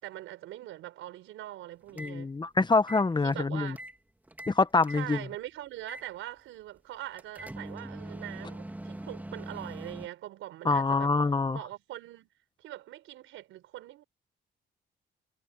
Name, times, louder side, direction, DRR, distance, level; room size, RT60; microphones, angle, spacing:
voice 1, 0.0-2.3 3.2-3.8 4.9-11.1 11.5-12.3 12.6-14.0, right 14 dB, 90° right, 5.4 m, -42 dB
sound 1, 1.9-2.2 2.8-4.0 4.3-5.1 5.9-6.1 7.2-10.1, right 1 dB, 10° right, 2.5 m, -42 dB
voice 2, 2.0-3.8 4.5-5.2 10.6-11.6, left 3 dB, 20° left, 1.2 m, -25 dB
cardioid pair, 90°, 20 cm